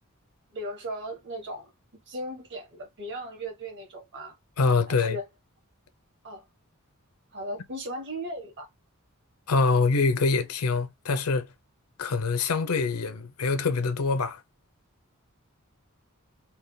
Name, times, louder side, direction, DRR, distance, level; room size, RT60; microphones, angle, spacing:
voice 1, 0.5-1.7 2.1-4.4 4.9-5.2 6.2-6.4 7.3-8.7, right 1 dB, 55° right, 1.3 m, -37 dB
voice 2, 4.6-5.2 9.5-11.5 12.0-14.4, left 4 dB, 80° left, 0.6 m, -25 dB
3.4 x 2.2 x 3.8 m
head